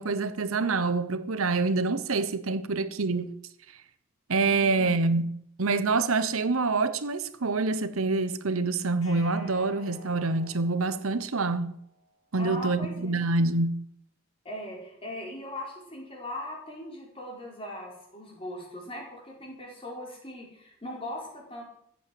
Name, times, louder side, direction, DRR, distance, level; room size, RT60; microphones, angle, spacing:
voice 1, 0.0-3.3 4.3-11.8 12.3-13.8, right 3 dB, 75° right, 0.9 m, -26 dB
voice 2, 4.5-4.9 12.4-13.2 14.4-21.6, left 1 dB, 25° left, 4.8 m, -39 dB
sound 1, 9.0-12.1, left 1 dB, 65° left, 4.6 m, -50 dB
15.0 x 8.6 x 7.8 m
head